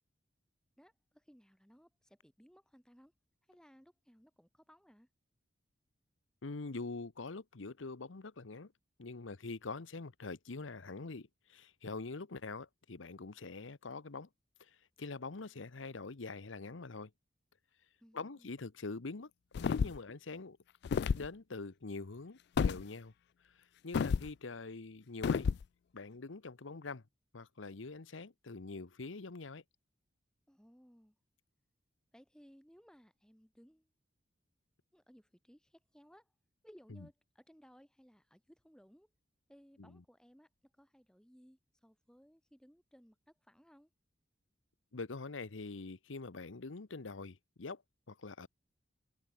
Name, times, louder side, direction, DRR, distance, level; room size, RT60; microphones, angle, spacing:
voice 1, 0.8-3.1 3.5-5.1 18.0-18.5 30.5-31.2 32.1-33.9 34.9-36.3 36.6-39.1 39.5-40.5 40.8-43.9, equal, 5° left, 7.7 m, -62 dB
voice 2, 6.4-8.7 9.0-14.3 14.6-17.1 18.1-19.3 19.6-20.6 21.1-23.1 23.4-25.5 25.9-27.0 27.3-29.6 36.9-37.1 39.8-40.0 44.9-47.8 48.1-48.5, left 3 dB, 90° left, 1.0 m, -44 dB
sound 1, 19.5-20.1 20.8-21.3 22.6-22.8 23.9-24.3 25.2-25.6, left 6 dB, 60° left, 0.3 m, -31 dB
head